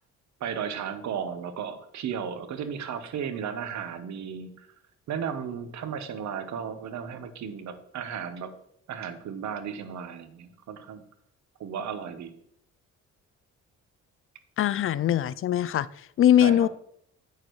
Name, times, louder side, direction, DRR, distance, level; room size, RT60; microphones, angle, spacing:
voice 1, 0.4-4.7 5.1-8.5 8.9-11.0 11.6-12.3 16.4-16.7, right 7 dB, 65° right, 1.0 m, -34 dB
voice 2, 14.6-15.9 16.2-16.7, left 11 dB, 45° left, 0.4 m, -21 dB
8.5 x 6.5 x 3.1 m
cardioid pair, 90°, 30 cm